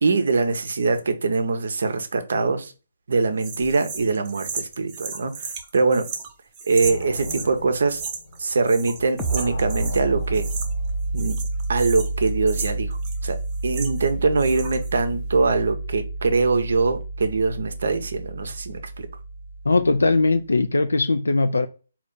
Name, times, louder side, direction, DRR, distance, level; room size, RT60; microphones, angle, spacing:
voice 1, 0.0-2.7 3.1-6.1 6.7-8.0 8.4-10.5 11.1-11.4 11.7-12.9 13.2-13.4 13.6-19.1, right 4 dB, 65° right, 0.6 m, -23 dB
sound 1, 3.4-7.5 7.9-8.4 8.6-10.0 10.3-10.9 11.2-14.1 14.4-14.9, right 5 dB, 30° right, 1.0 m, -35 dB
sound 2, 6.8-8.7 9.0-11.9, left 1 dB, 55° left, 0.9 m, -36 dB
sound 3, 9.2-20.5, right 2 dB, ahead, 0.6 m, -30 dB
voice 2, 19.6-21.7, left 3 dB, 80° left, 0.3 m, -20 dB
4.1 x 2.4 x 3.6 m
figure-of-eight pair, 140°, 0 cm